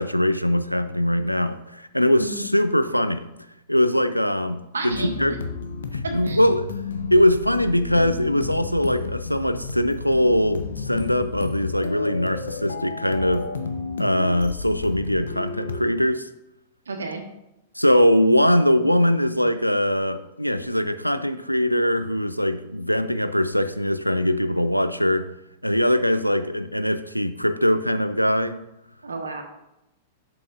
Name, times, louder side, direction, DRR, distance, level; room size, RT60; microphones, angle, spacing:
voice 1, 0.0-3.2 3.7-5.4 5.9-6.7 7.1-13.5 14.0-16.3 17.8-25.3 25.6-28.6, equal, 90° left, 12 dB, 0.5 m, -21 dB
voice 2, 2.2-2.5 4.7-5.1 6.0-6.4 16.9-17.2 29.0-29.4, right 3 dB, 70° right, 4 dB, 1.4 m, -31 dB
sound 1, 4.9-15.8, left 4 dB, 65° left, 0.8 m, -32 dB
11.0 x 7.8 x 2.5 m, 0.88 s
figure-of-eight pair, 100°, 0 cm